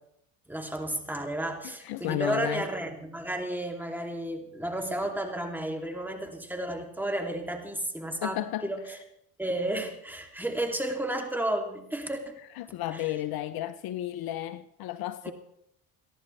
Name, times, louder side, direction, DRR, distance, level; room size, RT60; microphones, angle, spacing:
voice 1, 0.5-9.0 9.4-12.4 12.9-13.1 15.2-15.3, right 1 dB, 5° right, 2.9 m, -32 dB
voice 2, 1.8-2.6 8.2-8.7 12.6-15.3, left 13 dB, 60° left, 0.8 m, -33 dB
30.0 x 11.0 x 3.3 m
supercardioid pair, 75°, 41 cm